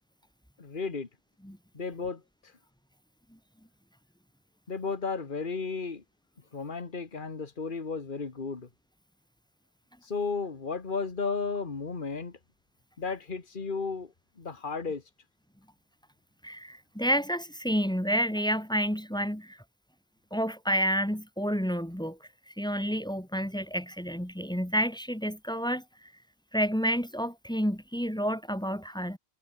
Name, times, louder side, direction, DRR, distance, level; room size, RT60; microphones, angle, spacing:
voice 1, 0.6-1.1 1.7-2.5 4.7-6.0 6.5-8.7 10.0-12.4 13.0-15.0, left 4 dB, 50° left, 2.0 m, -34 dB
voice 2, 16.4-19.6 20.3-22.2 22.5-25.8 26.5-29.2, equal, 5° left, 1.4 m, -29 dB
omnidirectional pair, 1.1 m